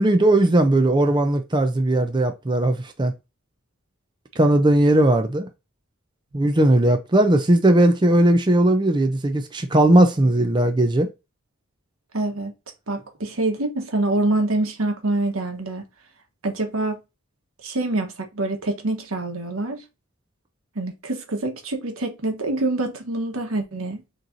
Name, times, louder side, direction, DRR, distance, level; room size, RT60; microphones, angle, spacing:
voice 1, 0.0-3.1 4.4-5.5 6.3-11.1, right 1 dB, 20° right, 0.5 m, -18 dB
voice 2, 12.1-12.5 12.9-15.8 16.4-17.0 17.6-19.8 20.7-24.0, right 2 dB, 90° right, 1.3 m, -25 dB
6.5 x 3.1 x 2.6 m
head